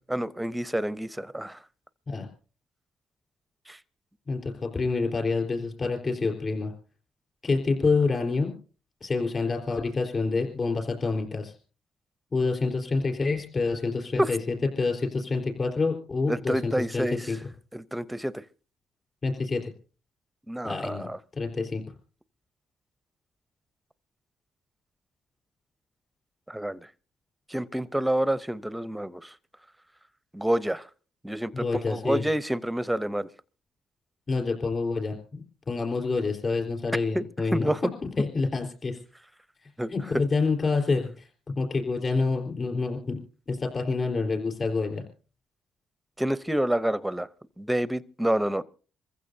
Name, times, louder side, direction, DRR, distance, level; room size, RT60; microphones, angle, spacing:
voice 1, 0.1-1.6 3.7-3.8 14.2-14.3 16.3-17.2 17.7-18.4 20.5-21.2 26.5-26.9 27.5-29.3 30.3-30.9 31.2-33.3 37.1-37.2 37.5-37.8 39.8-39.9 46.2-47.3 47.6-48.6, right 1 dB, 5° right, 0.6 m, -28 dB
voice 2, 4.3-6.7 7.4-8.5 9.0-11.6 12.3-14.4 14.8-17.4 19.2-19.7 20.6-21.9 31.5-32.3 34.3-37.7 38.2-39.0 39.6-41.3 41.6-43.2 43.5-45.0, left 4 dB, 40° left, 4.0 m, -27 dB
27.0 x 15.0 x 2.7 m
cardioid pair, 90°, 0 cm